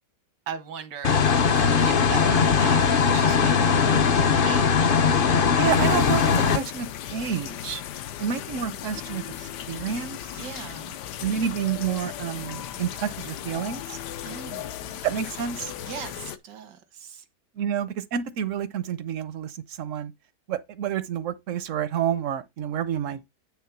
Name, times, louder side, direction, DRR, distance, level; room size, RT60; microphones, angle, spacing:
voice 1, 0.5-4.8 10.4-11.0 14.2-15.0 15.8-17.2, right 8 dB, 85° right, 1.7 m, -39 dB
sound 1, 1.0-6.6, left 6 dB, 60° left, 0.5 m, -20 dB
voice 2, 5.5-6.2 6.5-7.8 8.2-10.2 11.2-14.0 15.0-15.7 17.6-20.1 20.5-23.3, right 8 dB, 65° right, 0.8 m, -29 dB
sound 2, 5.7-16.4, left 11 dB, 80° left, 1.2 m, -37 dB
9.4 x 3.5 x 5.8 m
omnidirectional pair, 1.8 m